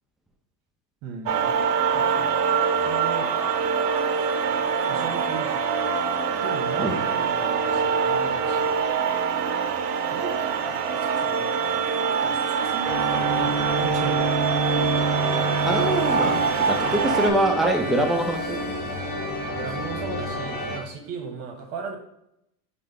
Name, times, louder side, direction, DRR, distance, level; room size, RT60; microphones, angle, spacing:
voice 1, 1.0-2.4 2.8-3.3 4.9-5.6 6.4-8.7 10.1-11.4 12.2-15.1 16.8-17.1 19.4-22.0, right 5 dB, 55° right, 3 dB, 1.2 m, -37 dB
sound 1, 1.3-17.3, right 6 dB, 75° right, 0.7 m, -24 dB
sound 2, 12.8-20.8, right 1 dB, 20° left, 1.0 m, -29 dB
voice 2, 15.6-18.6, right 1 dB, ahead, 2 dB, 0.4 m, -24 dB
5.0 x 2.2 x 3.6 m, 0.80 s
hypercardioid pair, 85°, 49 cm